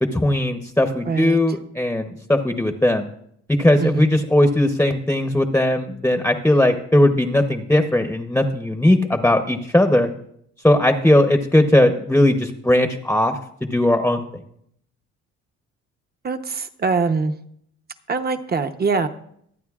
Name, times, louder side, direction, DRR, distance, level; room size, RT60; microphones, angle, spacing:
voice 1, 0.0-3.1 3.6-10.1 10.6-14.2, left 1 dB, 5° left, 6 dB, 0.8 m, -18 dB
voice 2, 1.1-1.4 3.8-4.2 16.2-17.3 18.1-19.1, right 4 dB, 30° right, 9 dB, 0.9 m, -23 dB
24.5 x 8.9 x 2.4 m, 0.71 s
cardioid pair, 90°, 30 cm